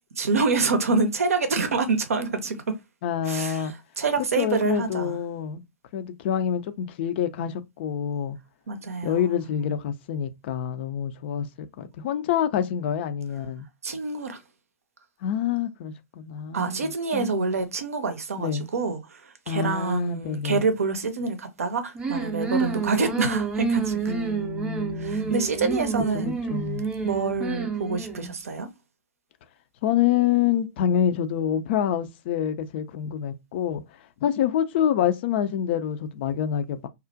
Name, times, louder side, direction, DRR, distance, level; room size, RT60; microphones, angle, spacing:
voice 1, 0.2-2.6 3.3-3.7 4.0-5.1 8.7-9.2 13.8-14.4 16.5-24.1 25.0-26.3 27.0-28.7, right 4 dB, 70° right, 0.6 m, -26 dB
voice 2, 3.0-3.7 4.4-5.6 5.9-8.4 9.0-13.7 15.2-17.7 18.4-18.7 19.5-20.6 24.1-25.3 26.1-26.9 29.8-36.9, left 9 dB, 45° left, 0.4 m, -27 dB
sound 1, 21.9-28.4, right 5 dB, 15° right, 0.5 m, -29 dB
2.4 x 2.1 x 2.6 m
figure-of-eight pair, 110°, 8 cm